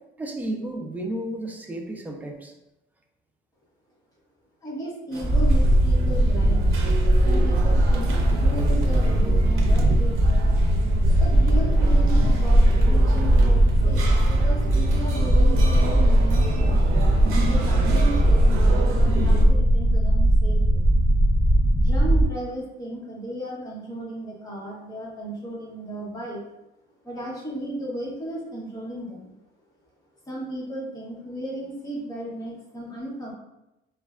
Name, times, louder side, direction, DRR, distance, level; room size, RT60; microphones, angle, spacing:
voice 1, 0.2-2.5, right 1 dB, 10° right, 1 dB, 0.3 m, -32 dB
voice 2, 4.6-6.8 7.2-10.4 11.2-16.8 17.5-20.9 21.8-26.4 27.0-29.3 30.3-33.3, right 1 dB, 20° left, -5 dB, 1.0 m, -35 dB
sound 1, 5.1-19.5, right 4 dB, 80° right, 0.6 m, -33 dB
sound 2, 5.2-22.2, right 1 dB, 30° right, 0.9 m, -19 dB
4.1 x 2.2 x 2.3 m, 0.92 s
cardioid pair, 150°, 21 cm